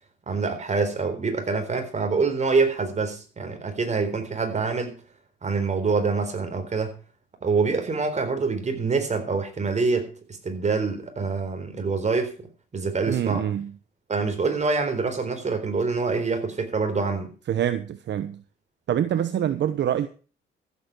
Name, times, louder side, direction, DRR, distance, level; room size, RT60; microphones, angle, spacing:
voice 1, 0.3-5.0 5.4-6.9 7.4-12.5 12.7-13.5 14.1-17.3, right 4 dB, 35° right, 4.0 m, -25 dB
voice 2, 13.1-13.7 17.5-18.4 18.9-20.1, right 10 dB, 60° right, 1.0 m, -25 dB
14.5 x 8.5 x 6.1 m
cardioid pair, 90°, 20 cm